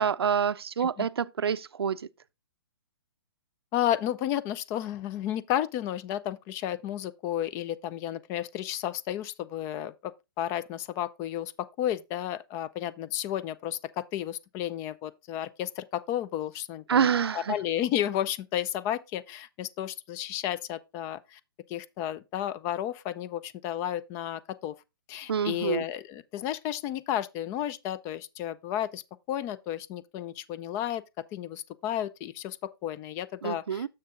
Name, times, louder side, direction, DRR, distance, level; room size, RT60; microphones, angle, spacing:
voice 1, 0.0-2.0 16.9-17.6 25.3-25.8 33.4-33.9, right 7 dB, 85° right, 0.5 m, -27 dB
voice 2, 3.7-17.1 17.3-21.4 21.7-24.8 25.1-29.0 29.3-31.0 31.3-33.9, left 11 dB, 20° left, 0.3 m, -32 dB
6.8 x 6.6 x 3.5 m
hypercardioid pair, 140°, 13 cm